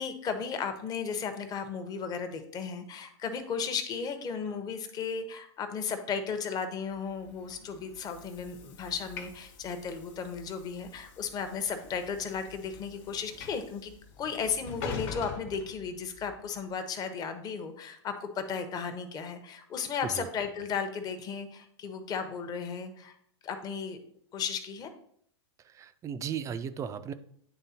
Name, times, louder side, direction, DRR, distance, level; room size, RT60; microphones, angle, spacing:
voice 1, 0.0-13.9 14.2-23.2 23.4-24.0 24.3-24.9, left 6 dB, 25° left, 8 dB, 0.8 m, -35 dB
Train / Sliding door, 7.1-16.4, left 4 dB, 45° left, 1.2 m, -45 dB
voice 2, 25.6-27.1, right 7 dB, 20° right, 11 dB, 0.4 m, -36 dB
9.9 x 3.4 x 2.8 m, 0.66 s
hypercardioid pair, 110°, 15 cm